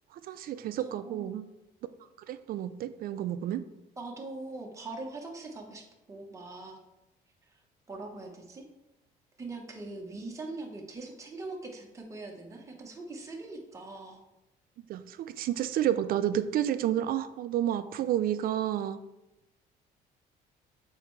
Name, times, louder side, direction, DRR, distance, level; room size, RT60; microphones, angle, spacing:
voice 1, 0.1-1.5 2.3-3.6 14.9-19.0, right 11 dB, 60° right, 12 dB, 0.4 m, -30 dB
voice 2, 0.8-1.4 4.0-6.8 7.5-7.6 7.9-8.6 9.4-14.2, right 3 dB, 20° right, 0 dB, 1.1 m, -42 dB
7.7 x 4.5 x 3.2 m, 0.94 s
cardioid pair, 110°, 17 cm